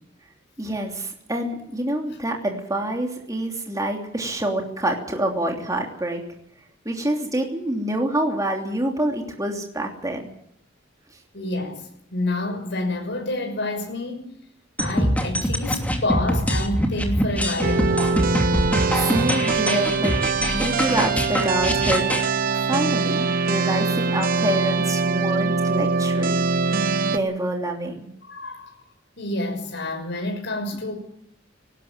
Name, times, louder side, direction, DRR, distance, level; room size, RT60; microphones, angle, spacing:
voice 1, 0.6-6.2 6.8-10.2 18.9-22.1 22.5-26.5 27.1-28.0, right 1 dB, 20° right, 3.0 m, -27 dB
voice 2, 11.3-14.3 14.8-18.2 28.2-28.8 29.2-30.9, left 2 dB, 65° left, 6.1 m, -28 dB
sound 1, 14.8-22.3, equal, 10° left, 2.8 m, -24 dB
sound 2, 17.6-27.2, right 4 dB, 50° right, 1.1 m, -23 dB
19.0 x 18.5 x 9.0 m
head